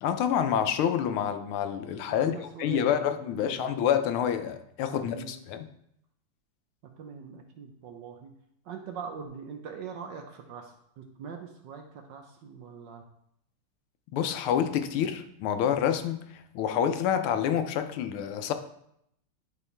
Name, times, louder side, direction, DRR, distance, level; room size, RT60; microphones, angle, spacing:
voice 1, 0.0-5.7 14.1-16.2 16.5-18.5, left 9 dB, 80° left, 1.5 m, -27 dB
voice 2, 2.1-3.7 4.8-5.3 7.0-8.3 8.7-13.0, right 6 dB, 65° right, 1.3 m, -42 dB
9.8 x 4.7 x 3.3 m
omnidirectional pair, 2.4 m